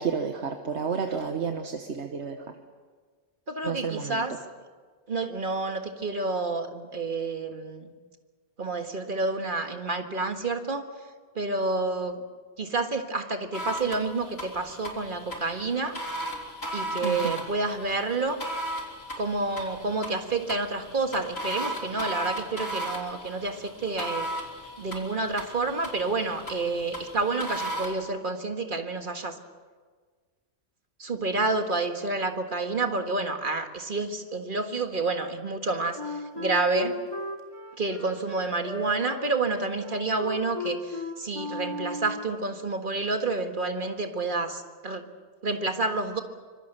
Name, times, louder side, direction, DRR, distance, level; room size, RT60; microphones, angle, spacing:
voice 1, 0.0-2.4 3.6-4.2 17.0-17.4, right 6 dB, 90° right, 5 dB, 1.5 m, -31 dB
voice 2, 3.5-4.3 5.1-7.9 8.6-10.9 11.4-12.2 12.6-16.0 16.7-18.4 19.2-24.3 24.8-29.4 31.0-37.0 37.8-45.0 45.4-46.2, right 3 dB, 50° right, 6 dB, 1.8 m, -29 dB
sound 1, 13.5-27.9, right 1 dB, 65° left, 3.9 m, -36 dB
Wind instrument woodwind instrument, 36.0-42.3, left 1 dB, 20° left, 3.0 m, -36 dB
25.5 x 23.0 x 6.8 m, 1.5 s
omnidirectional pair, 1.1 m